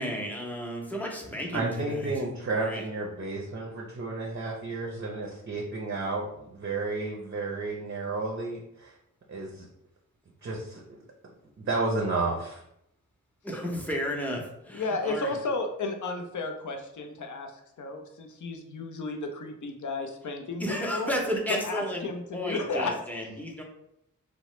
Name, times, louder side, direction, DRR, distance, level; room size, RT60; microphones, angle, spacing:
voice 1, 0.0-2.1 2.5-2.8 13.4-15.3 20.6-22.1 22.3-23.6, equal, 5° left, 0 dB, 0.6 m, -32 dB
voice 2, 1.5-9.0 9.3-9.7 10.4-10.8 11.6-12.6, right 3 dB, 40° right, -1 dB, 0.5 m, -32 dB
voice 3, 14.7-17.5 17.8-21.1 21.5-22.9, left 3 dB, 65° left, 5 dB, 0.5 m, -33 dB
2.9 x 2.0 x 3.0 m, 0.79 s
wide cardioid pair, 60°, 33 cm